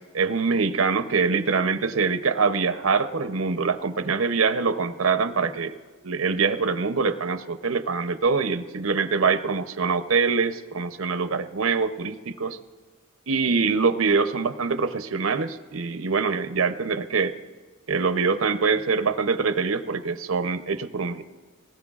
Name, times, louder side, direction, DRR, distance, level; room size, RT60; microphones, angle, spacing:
voice 1, 0.1-5.8 6.0-12.6 13.3-17.3 17.9-21.2, right 4 dB, 80° right, 10 dB, 0.7 m, -24 dB
23.5 x 19.5 x 2.4 m, 1.5 s
head